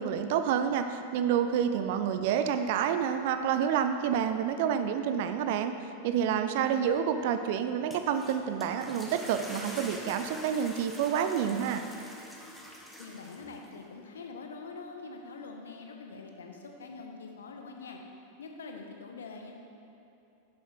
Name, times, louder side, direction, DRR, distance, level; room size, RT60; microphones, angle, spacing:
voice 1, 0.0-5.7 6.0-11.8, right 8 dB, 50° right, 8 dB, 0.4 m, -28 dB
sound 1, 7.7-13.7, equal, 5° left, 0.9 m, -45 dB
voice 2, 13.0-18.0 18.4-19.5, left 4 dB, 65° left, 2 dB, 0.9 m, -44 dB
7.6 x 7.1 x 4.5 m, 2.8 s
figure-of-eight pair, 90°, 0 cm